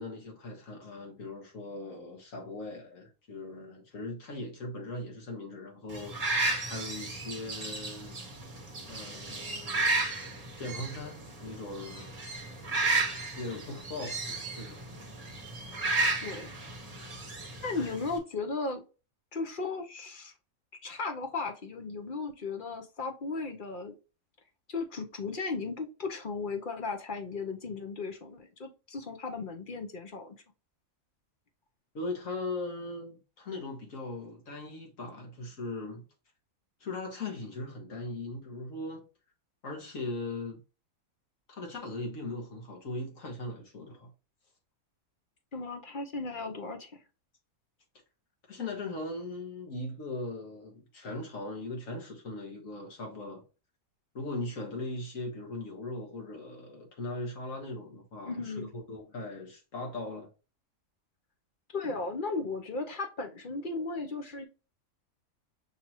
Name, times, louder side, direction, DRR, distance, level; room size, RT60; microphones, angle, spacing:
voice 1, 0.0-6.2 6.7-8.2 8.9-10.1 10.6-12.1 13.4-14.8 17.8-17.9 31.9-36.0 36.8-39.0 39.6-40.6 41.5-44.1 48.5-53.4 54.1-60.3, left 2 dB, 65° left, 1.8 m, -39 dB
sound 1, 5.9-18.2, right 2 dB, 30° right, 1.0 m, -33 dB
voice 2, 16.2-16.5 17.6-18.8 19.3-20.3 20.8-24.0 24.7-30.4 45.5-47.0 58.2-58.7 61.7-64.5, left 3 dB, 45° left, 0.8 m, -36 dB
5.9 x 2.9 x 2.9 m
omnidirectional pair, 1.5 m